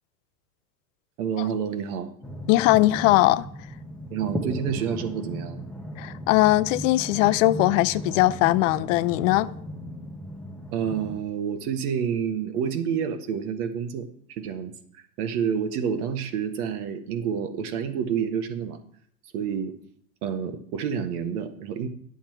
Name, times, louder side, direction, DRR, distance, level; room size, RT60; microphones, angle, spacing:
voice 1, 1.2-2.2 4.1-5.6 10.7-18.8 19.3-19.7 20.2-21.9, right 7 dB, 65° right, 1.5 m, -29 dB
sound 1, 2.2-11.2, equal, ahead, 0.8 m, -36 dB
voice 2, 2.5-3.5 6.0-9.5, left 17 dB, 50° left, 0.6 m, -20 dB
10.5 x 7.2 x 4.5 m
hypercardioid pair, 105°, 49 cm